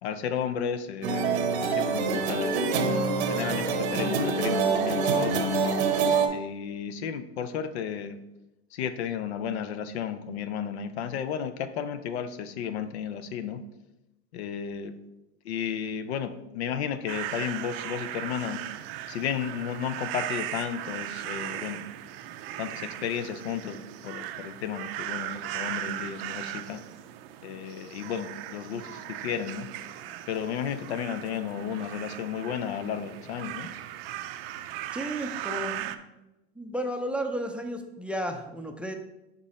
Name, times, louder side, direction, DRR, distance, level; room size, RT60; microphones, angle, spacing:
voice 1, 0.0-5.6 6.3-8.2 8.7-13.6 14.3-14.9 15.4-18.6 19.1-21.8 22.6-26.8 27.4-29.7 30.3-33.7, left 8 dB, 80° left, 12 dB, 0.6 m, -33 dB
sound 1, 1.0-6.3, right 4 dB, 80° right, 0.9 m, -25 dB
sound 2, 17.1-36.0, right 13 dB, 65° right, 0.5 m, -38 dB
voice 2, 34.9-36.0 36.6-38.9, right 1 dB, 5° right, 5 dB, 0.4 m, -33 dB
6.0 x 3.8 x 4.1 m, 0.96 s
hypercardioid pair, 100°, 32 cm